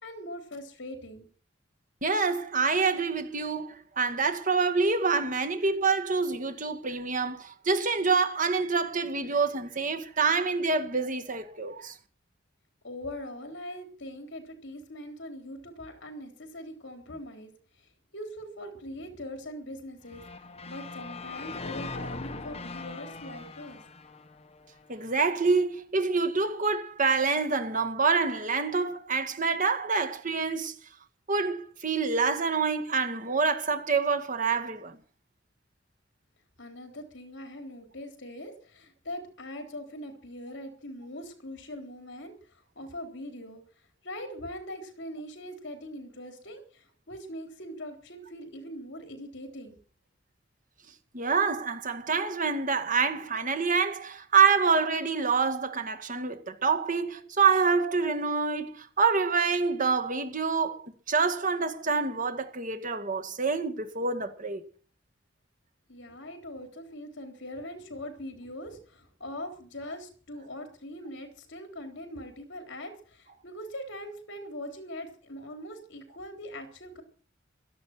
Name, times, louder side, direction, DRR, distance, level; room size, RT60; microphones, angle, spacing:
voice 1, 0.0-1.3 12.8-17.5 18.1-20.2 20.7-23.8 36.6-42.3 42.8-43.6 44.0-49.8 65.9-77.0, left 1 dB, 65° left, 3.6 m, -41 dB
voice 2, 2.0-12.0 24.9-30.8 31.3-35.0 51.1-64.6, right 4 dB, 40° right, 2.0 m, -26 dB
sound 1, 20.1-25.1, left 3 dB, 30° left, 1.4 m, -41 dB
16.5 x 12.0 x 6.1 m
head